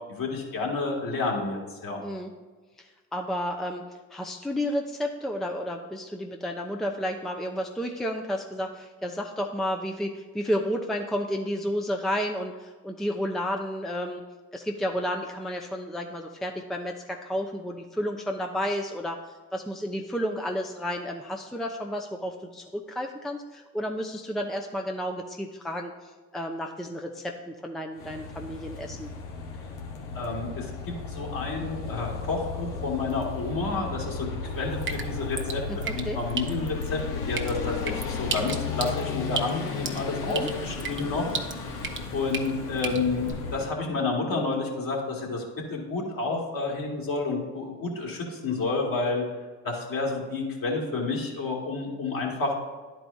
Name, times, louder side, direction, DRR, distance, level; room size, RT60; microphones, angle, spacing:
voice 1, 0.1-2.0 30.1-41.4 42.1-49.2 49.6-52.5, left 3 dB, 50° left, -2 dB, 2.4 m, -30 dB
voice 2, 2.0-2.3 2.8-3.8 4.1-14.2 14.5-29.1 35.7-36.2 40.3-40.5, equal, ahead, 2 dB, 0.7 m, -31 dB
sound 1, 28.0-43.7, left 5 dB, 65° left, 1.2 m, -35 dB
Drip, 34.5-43.3, right 5 dB, 25° right, 1.0 m, -37 dB
12.0 x 4.7 x 2.7 m, 1.4 s
hypercardioid pair, 50°, 45 cm